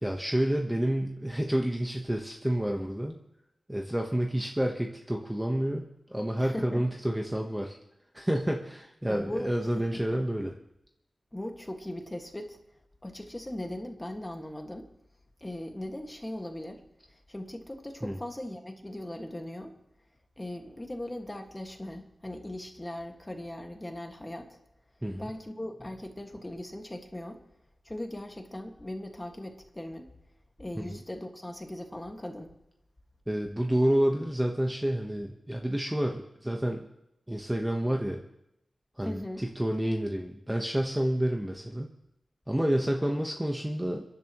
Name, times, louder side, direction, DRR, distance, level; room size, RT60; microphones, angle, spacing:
voice 1, 0.0-3.2 3.7-7.8 8.1-10.6 18.0-18.2 25.0-25.3 30.8-31.0 33.3-36.9 37.3-38.2 39.0-41.9 42.5-44.0, right 1 dB, 10° right, 2 dB, 1.1 m, -29 dB
voice 2, 6.4-6.9 9.1-9.5 9.8-10.0 11.3-12.6 13.0-14.9 15.4-16.8 17.1-19.7 20.4-24.6 25.2-27.4 27.9-30.1 30.6-32.6 39.0-39.4, left 1 dB, 15° left, 3 dB, 1.8 m, -39 dB
30.0 x 11.0 x 3.0 m, 0.84 s
wide cardioid pair, 95°, 0 cm